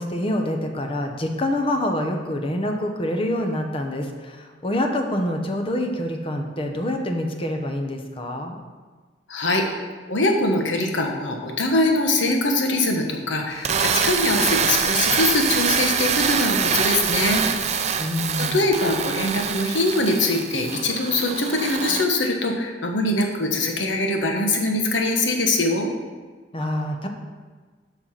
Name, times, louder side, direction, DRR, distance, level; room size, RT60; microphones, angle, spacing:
voice 1, 0.0-8.6 18.0-18.7 26.5-27.1, left 1 dB, 30° left, 3 dB, 0.9 m, -26 dB
voice 2, 9.3-9.6 10.1-17.4 18.4-25.9, left 2 dB, 85° left, 3 dB, 1.2 m, -22 dB
sound 1, 13.5-22.1, right 7 dB, 35° right, 0.5 m, -24 dB
7.6 x 5.7 x 5.7 m, 1.4 s
head